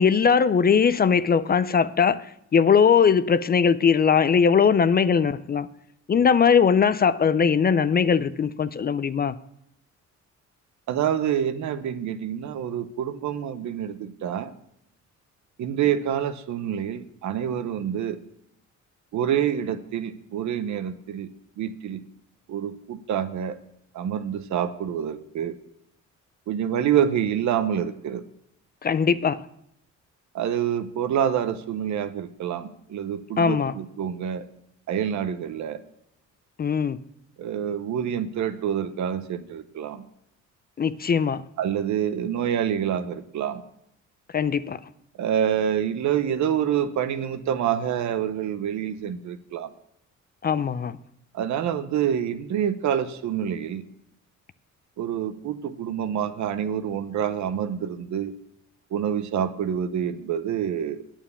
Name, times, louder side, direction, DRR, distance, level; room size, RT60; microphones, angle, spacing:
voice 1, 0.0-5.7 6.1-9.4 28.8-29.4 33.4-33.7 36.6-37.0 40.8-41.4 44.3-44.8 50.4-51.0, left 6 dB, 30° left, 0.4 m, -20 dB
voice 2, 10.9-14.5 15.6-18.2 19.1-21.3 21.6-22.0 22.5-23.6 23.9-25.5 26.5-28.2 30.3-34.5 34.9-35.8 37.4-40.0 41.6-43.6 45.2-49.7 51.3-53.8 55.0-58.3 58.9-61.0, right 9 dB, 70° right, 0.8 m, -27 dB
8.9 x 7.2 x 6.9 m
cardioid pair, 90°, 30 cm